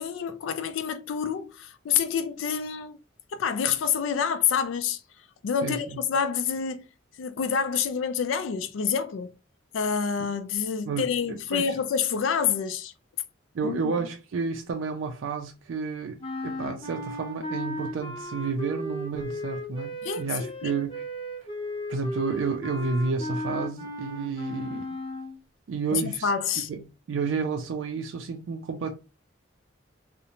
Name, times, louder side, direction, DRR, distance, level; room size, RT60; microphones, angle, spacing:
voice 1, 0.0-3.0 3.3-5.0 5.4-6.9 7.2-9.3 9.7-12.9 13.6-13.9 20.0-20.8 25.9-26.7, left 7 dB, 80° left, 0.3 m, -27 dB
voice 2, 5.6-6.0 10.9-11.7 13.5-21.0 21.9-24.9 25.7-26.3 26.7-29.0, right 4 dB, 80° right, 0.4 m, -31 dB
sound 1, 16.2-25.4, left 1 dB, 25° left, 0.6 m, -35 dB
2.5 x 2.1 x 2.8 m
head